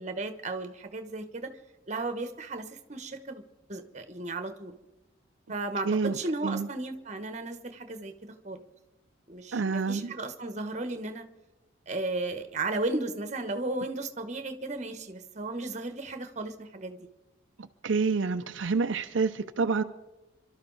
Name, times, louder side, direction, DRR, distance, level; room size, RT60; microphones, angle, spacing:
voice 1, 0.0-1.5 1.9-3.4 3.7-4.7 5.5-8.6 9.3-11.3 11.9-17.1, right 2 dB, 35° right, 9 dB, 1.1 m, -35 dB
voice 2, 5.8-6.2 6.4-6.7 9.5-10.1 17.8-19.8, right 4 dB, 70° right, 7 dB, 0.5 m, -27 dB
27.5 x 12.5 x 4.0 m, 1.1 s
head